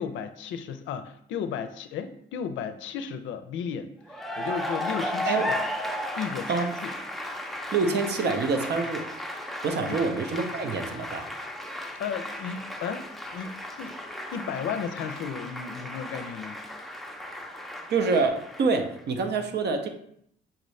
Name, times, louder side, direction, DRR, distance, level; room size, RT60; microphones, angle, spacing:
voice 1, 0.0-5.6 6.2-6.9 9.9-10.0 12.0-14.0 14.3-16.6, left 7 dB, 90° left, 9 dB, 0.4 m, -34 dB
Cheering / Applause, 4.1-19.0, left 1 dB, ahead, 0.5 m, -35 dB
voice 2, 7.7-9.1 9.6-11.3 17.9-19.9, right 4 dB, 60° right, 6 dB, 0.6 m, -26 dB
5.8 x 2.6 x 3.2 m, 0.70 s
cardioid pair, 110°, 19 cm